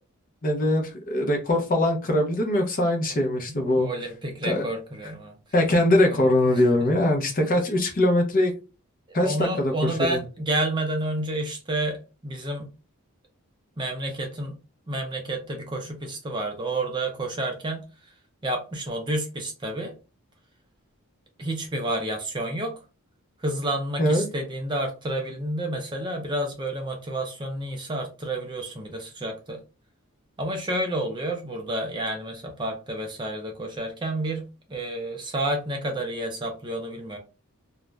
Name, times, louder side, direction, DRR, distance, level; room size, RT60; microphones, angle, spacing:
voice 1, 0.4-3.9 4.4-4.6 5.5-8.5 9.1-10.2 24.0-24.3, left 1 dB, 40° left, 3 dB, 0.6 m, -22 dB
voice 2, 3.5-5.4 6.1-6.2 9.1-12.7 13.8-14.6 14.9-17.8 18.4-19.9 21.4-22.8 23.4-29.6 30.4-37.2, right 1 dB, 20° right, 3 dB, 0.4 m, -30 dB
2.4 x 2.1 x 3.1 m, 0.31 s
head